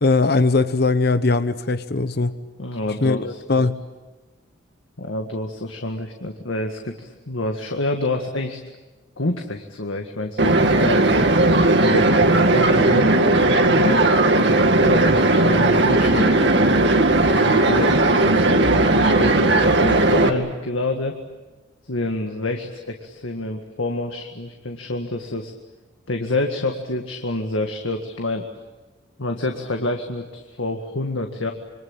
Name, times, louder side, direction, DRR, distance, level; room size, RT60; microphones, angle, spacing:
voice 1, 0.0-2.4 3.0-3.8, left 3 dB, 55° left, 0.9 m, -20 dB
voice 2, 2.6-3.4 5.0-8.6 9.2-11.1 11.6-14.0 14.8-16.3 17.3-21.2 21.9-25.5 26.1-28.5 29.2-31.5, left 2 dB, 85° left, 1.9 m, -28 dB
sound 1, 10.4-20.3, right 2 dB, 60° right, 2.1 m, -17 dB
27.0 x 25.0 x 8.9 m
head